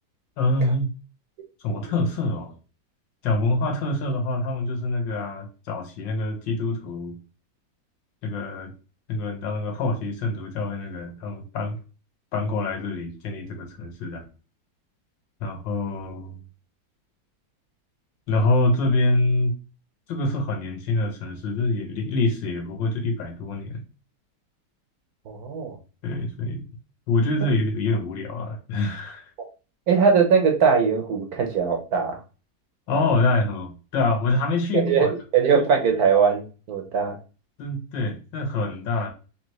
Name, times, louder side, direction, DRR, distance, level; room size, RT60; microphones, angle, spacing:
voice 1, 0.4-0.9 1.6-2.5 3.2-7.2 8.2-8.7 9.1-11.7 12.3-14.2 15.4-16.4 18.3-19.6 20.1-23.8 26.0-26.7 27.1-29.3 32.9-35.1 35.4-35.7 37.6-39.1, left 2 dB, 90° left, 4 dB, 1.7 m, -25 dB
voice 2, 25.3-25.8 29.9-32.2 32.9-33.0 34.7-37.2, right 6 dB, 65° right, 3 dB, 1.2 m, -21 dB
4.0 x 3.1 x 3.1 m, 0.34 s
omnidirectional pair, 1.9 m